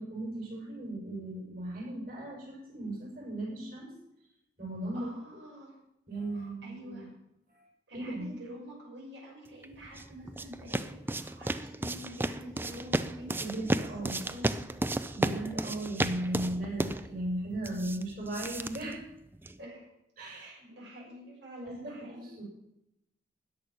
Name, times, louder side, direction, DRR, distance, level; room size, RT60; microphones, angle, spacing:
voice 1, 0.0-3.9 4.6-5.4 6.1-7.1 7.5-7.6 7.9-8.3 13.4-14.2 15.1-19.0 20.2-20.5 21.6-22.4, right 1 dB, 50° right, -4 dB, 6.5 m, -37 dB
voice 2, 4.9-5.8 6.4-7.1 7.9-14.6 15.1-15.4 19.6-19.9 20.3-22.3, equal, 80° right, -4 dB, 6.1 m, -47 dB
sound 1, 9.6-19.6, right 1 dB, 10° right, 0.4 m, -34 dB
13.5 x 10.0 x 6.1 m, 0.83 s
head